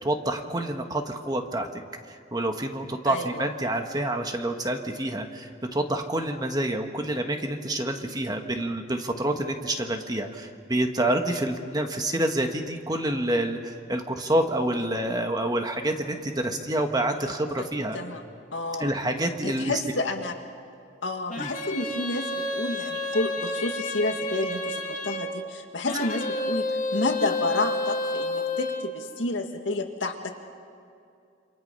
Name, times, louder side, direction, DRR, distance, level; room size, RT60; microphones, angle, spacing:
voice 1, 0.0-1.7 2.1-18.0 18.8-19.8 21.4-21.5, right 1 dB, 20° right, 5 dB, 1.5 m, -28 dB
voice 2, 3.1-3.5 17.6-17.7 17.9-18.2 18.5-18.9 19.4-20.4 21.0-26.7 26.9-30.3, left 2 dB, 85° left, 4 dB, 2.1 m, -30 dB
sound 1, 21.3-25.3 25.9-28.9, left 2 dB, 40° left, 2.1 m, -30 dB
28.0 x 26.5 x 5.6 m, 2.5 s
head